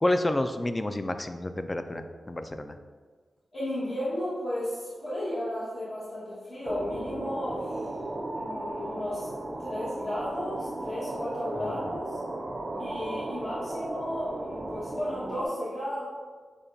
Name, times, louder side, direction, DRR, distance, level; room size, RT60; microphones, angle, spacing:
voice 1, 0.0-2.8 11.6-12.0, left 1 dB, 25° left, 8 dB, 0.3 m, -29 dB
voice 2, 3.5-7.9 8.3-9.3 9.6-12.2 12.8-16.1, left 1 dB, 55° left, -12 dB, 1.3 m, -34 dB
sound 1, 6.6-15.5, right 2 dB, 35° right, 0.5 m, -36 dB
6.6 x 2.3 x 2.6 m, 1.5 s
cardioid pair, 60°, 0 cm